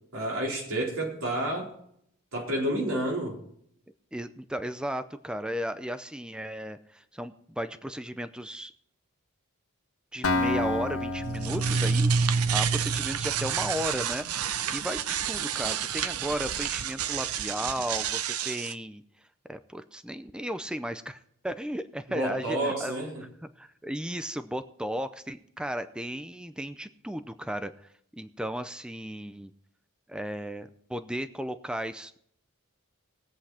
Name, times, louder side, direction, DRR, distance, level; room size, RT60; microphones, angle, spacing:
voice 1, 0.1-1.7 2.3-3.4 22.1-23.2, right 1 dB, 70° right, 4.2 m, -30 dB
voice 2, 4.1-8.7 10.1-14.3 14.7-19.0 19.5-23.3 23.6-27.7 28.1-29.5 30.1-32.2, equal, 5° right, 0.5 m, -35 dB
Acoustic guitar, 10.2-14.1, left 2 dB, 70° left, 1.5 m, -32 dB
sound 1, 11.2-18.7, right 6 dB, 90° right, 0.7 m, -29 dB
20.5 x 8.1 x 4.3 m
head